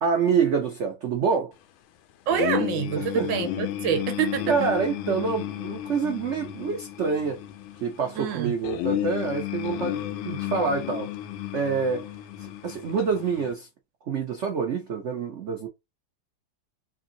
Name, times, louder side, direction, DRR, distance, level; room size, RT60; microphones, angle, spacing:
voice 1, 0.0-1.5 3.0-3.3 4.5-7.4 7.8-11.1 11.5-12.1 12.4-13.7 14.0-15.7, right 5 dB, 90° right, 0.6 m, -26 dB
sound 1, 2.3-13.5, left 12 dB, 85° left, 1.4 m, -33 dB
voice 2, 2.3-4.5 8.2-8.5, right 8 dB, 70° right, 1.4 m, -26 dB
3.5 x 2.6 x 3.8 m
omnidirectional pair, 2.2 m